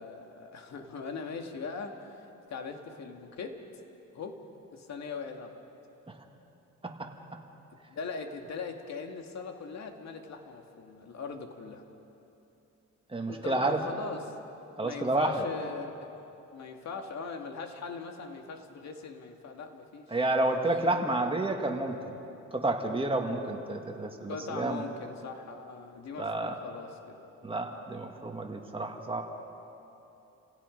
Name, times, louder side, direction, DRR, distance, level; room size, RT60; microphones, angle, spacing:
voice 1, 0.0-3.6 4.1-4.4 4.7-5.6 7.9-11.8 13.3-14.3 14.8-15.9 16.5-20.2 20.4-20.6 24.3-27.3, left 5 dB, 60° left, 4 dB, 2.3 m, -40 dB
voice 2, 6.8-7.4 13.1-13.8 14.8-15.4 20.1-22.1 22.5-24.8 26.2-26.6 27.4-29.2, right 2 dB, 20° right, 2 dB, 2.2 m, -30 dB
29.5 x 16.5 x 5.3 m, 2.9 s
cardioid pair, 90°, 30 cm